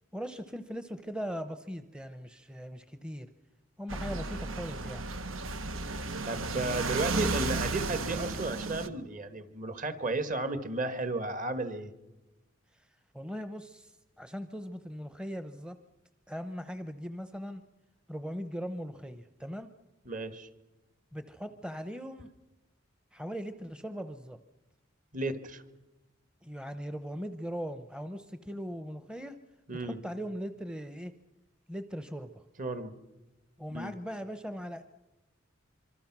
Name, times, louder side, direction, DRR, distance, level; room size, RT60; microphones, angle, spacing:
voice 1, 0.1-3.3 3.8-5.0 13.1-15.8 16.3-17.6 18.1-19.7 21.1-22.3 23.1-24.4 26.4-29.4 29.8-31.1 31.7-32.4 33.6-34.8, equal, 5° right, 10 dB, 0.8 m, -39 dB
sound 1, 3.9-8.9, right 3 dB, 85° right, 1.3 m, -34 dB
voice 2, 6.3-11.9 20.1-20.5 25.1-25.6 29.7-30.0 32.6-33.0 33.7-33.9, right 2 dB, 40° right, 11 dB, 1.6 m, -33 dB
25.5 x 24.5 x 6.0 m, 1.0 s
head